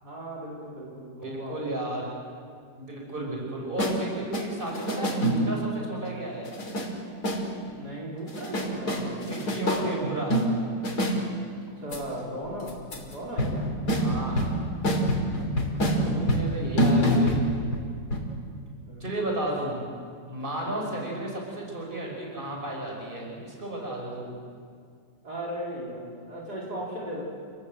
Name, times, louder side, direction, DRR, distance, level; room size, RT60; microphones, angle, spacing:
voice 1, 0.0-2.0 7.6-10.2 11.6-13.7 18.8-19.0 19.7-19.8 20.8-21.1 25.2-27.3, equal, 60° right, -4 dB, 5.2 m, -37 dB
voice 2, 1.2-2.1 2.8-6.5 9.2-10.4 13.9-14.5 16.0-17.4 19.0-19.8 20.3-24.4, right 1 dB, 30° right, -1 dB, 6.0 m, -33 dB
sound 1, 3.8-4.0 4.3-5.7 6.4-6.9 7.2-7.4 8.3-9.8 10.3-11.2 11.9-12.0 12.7-13.1 13.4-17.8 18.1-18.2, equal, 60° left, 3.7 m, -26 dB
29.0 x 19.0 x 7.9 m, 2.1 s
omnidirectional pair, 1.9 m